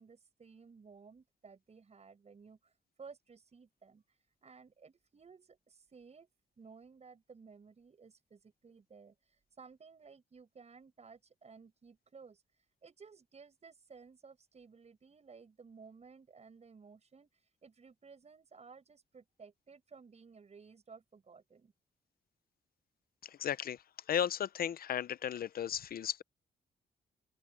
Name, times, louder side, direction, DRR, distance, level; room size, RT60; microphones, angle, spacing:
voice 1, 0.0-6.3 6.6-21.7, right 5 dB, 40° right, 7.4 m, -57 dB
voice 2, 23.2-26.2, left 9 dB, 55° left, 0.6 m, -35 dB
open air
wide cardioid pair, 135°, 18 cm